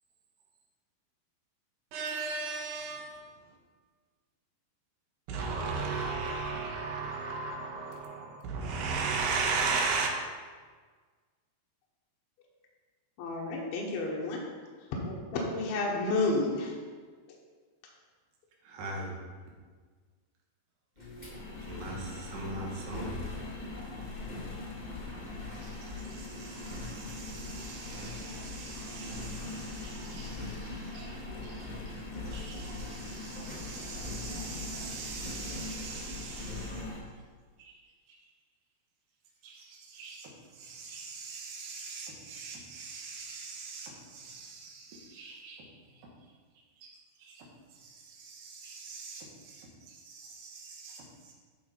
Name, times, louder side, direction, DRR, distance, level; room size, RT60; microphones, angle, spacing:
voice 1, 1.9-3.3 5.3-10.1, right 4 dB, 80° right, 3.1 m, -32 dB
voice 2, 13.2-14.4 14.9-16.7, left 2 dB, 75° left, 2.9 m, -31 dB
voice 3, 18.6-19.1 21.7-23.2 25.4-31.9 32.2-36.8 37.6-37.7 39.4-45.6 46.8-46.9 47.2-47.5 47.7-51.3, right 3 dB, 60° right, 3.0 m, -44 dB
Engine, 21.0-37.0, left 2 dB, 30° left, 0.7 m, -40 dB
10.5 x 6.0 x 4.4 m
omnidirectional pair, 4.6 m